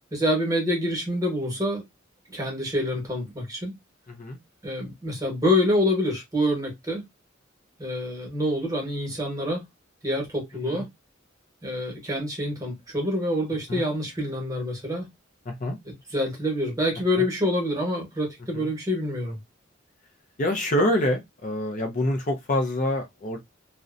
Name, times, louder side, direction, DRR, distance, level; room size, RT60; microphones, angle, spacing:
voice 1, 0.1-1.8 2.3-3.7 4.6-7.0 7.8-9.6 10.0-10.9 11.6-15.1 15.8-19.4, left 1 dB, 15° right, 1.0 m, -26 dB
voice 2, 4.1-4.4 10.7-10.9 13.7-13.8 15.5-15.8 17.2-17.3 18.5-18.7 20.4-23.4, left 1 dB, 40° left, 0.5 m, -26 dB
2.6 x 2.1 x 2.4 m
head